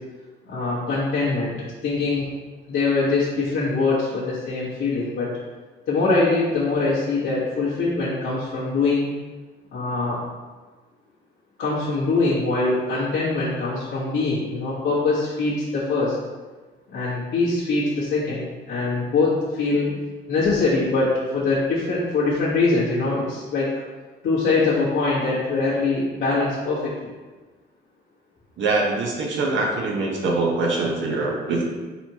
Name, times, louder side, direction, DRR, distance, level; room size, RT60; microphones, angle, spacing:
voice 1, 0.5-1.6 1.8-2.2 2.7-5.3 5.9-9.1 9.7-10.2 11.6-16.2 16.9-19.9 20.3-23.7 24.2-27.1, left 3 dB, 80° left, -11 dB, 1.3 m, -23 dB
voice 2, 28.6-31.6, right 3 dB, 75° right, -1 dB, 1.0 m, -23 dB
4.4 x 4.1 x 2.9 m, 1.3 s
cardioid pair, 90°, 20 cm